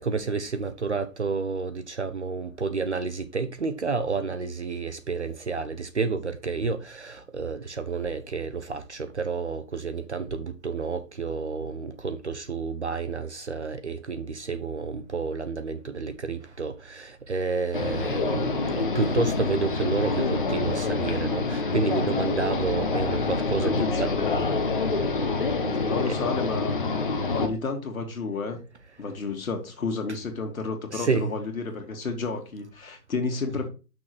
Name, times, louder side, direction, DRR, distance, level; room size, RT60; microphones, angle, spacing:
voice 1, 0.0-24.1 25.5-26.2 30.9-31.3, right 4 dB, 45° right, 0.7 m, -30 dB
sound 1, 17.7-27.5, left 3 dB, 30° left, 0.9 m, -26 dB
voice 2, 23.6-24.4 25.8-26.7 27.3-28.6 29.0-33.7, left 4 dB, 55° left, 1.9 m, -31 dB
6.2 x 4.8 x 6.5 m
hypercardioid pair, 165°, 48 cm